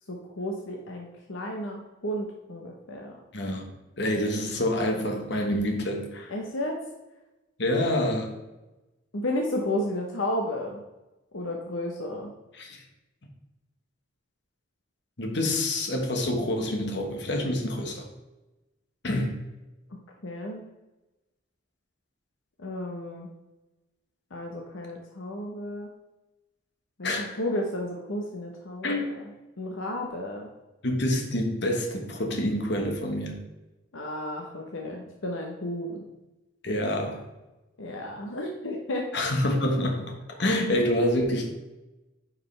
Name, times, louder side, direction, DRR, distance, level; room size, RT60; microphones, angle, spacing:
voice 1, 0.1-3.1 6.3-6.8 9.1-10.8 11.3-12.3 20.2-20.6 22.6-23.3 24.3-25.9 27.0-29.0 29.6-30.5 33.9-36.1 37.8-39.1, left 1 dB, 75° left, 0 dB, 0.9 m, -32 dB
voice 2, 3.3-3.6 4.0-6.3 7.6-8.3 12.5-12.8 15.2-18.1 19.0-19.3 27.0-27.4 28.8-29.0 30.8-33.4 36.6-37.2 39.1-40.1 40.4-41.5, left 1 dB, 55° left, 3 dB, 1.3 m, -27 dB
9.7 x 5.0 x 3.3 m, 1.0 s
head